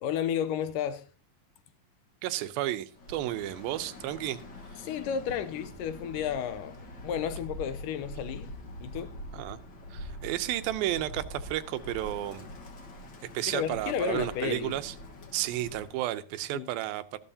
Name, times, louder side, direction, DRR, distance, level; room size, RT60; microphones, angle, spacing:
voice 1, 0.0-1.1 4.8-6.8 7.0-8.5 8.8-9.2 13.5-14.8 16.5-16.7, left 8 dB, 75° left, 2.2 m, -32 dB
voice 2, 2.2-4.4 4.7-4.8 9.3-9.6 9.9-12.5 13.3-14.9 15.3-17.2, right 14 dB, 90° right, 2.6 m, -32 dB
Bird, 2.9-16.0, left 1 dB, 55° left, 1.3 m, -44 dB
14.5 x 12.5 x 2.8 m
omnidirectional pair, 4.1 m